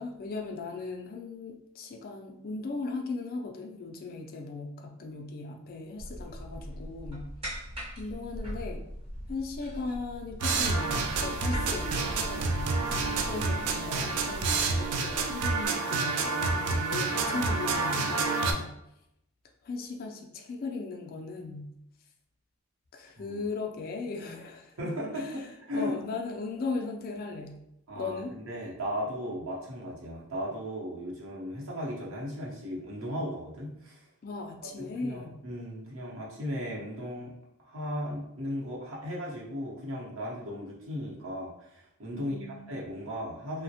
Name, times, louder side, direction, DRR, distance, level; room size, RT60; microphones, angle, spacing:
voice 1, 0.0-7.3 8.0-8.8 9.3-12.8 13.2-18.7 19.6-21.7 22.9-27.6 28.0-28.3 34.2-35.4 42.1-42.8, left 3 dB, 40° left, 2 dB, 0.3 m, -38 dB
sound 1, 6.0-15.7, equal, 25° right, 0.6 m, -40 dB
sound 2, 10.4-18.5, right 4 dB, 85° right, 0.4 m, -29 dB
voice 2, 13.0-13.5 23.2-23.4 24.8-26.0 27.9-34.0 34.8-37.3 37.6-42.4 42.7-43.6, equal, 60° right, -4 dB, 0.8 m, -36 dB
3.0 x 2.0 x 2.8 m, 0.81 s
head